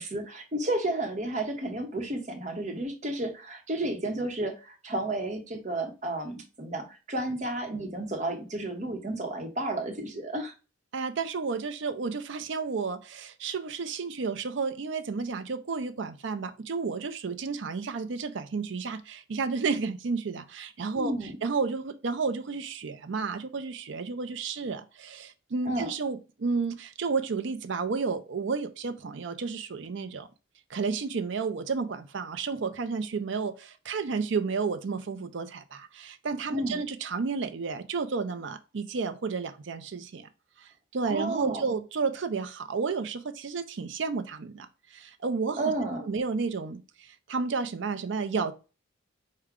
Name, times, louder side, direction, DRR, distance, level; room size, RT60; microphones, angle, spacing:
voice 1, 0.0-10.5 20.9-21.4 25.6-25.9 36.5-36.8 41.1-41.6 45.6-46.0, right 1 dB, 35° right, 0.9 m, -32 dB
voice 2, 10.9-21.1 21.4-30.3 30.7-40.3 40.6-45.6 46.1-48.5, right 4 dB, 65° right, 0.5 m, -32 dB
4.7 x 2.2 x 3.6 m
head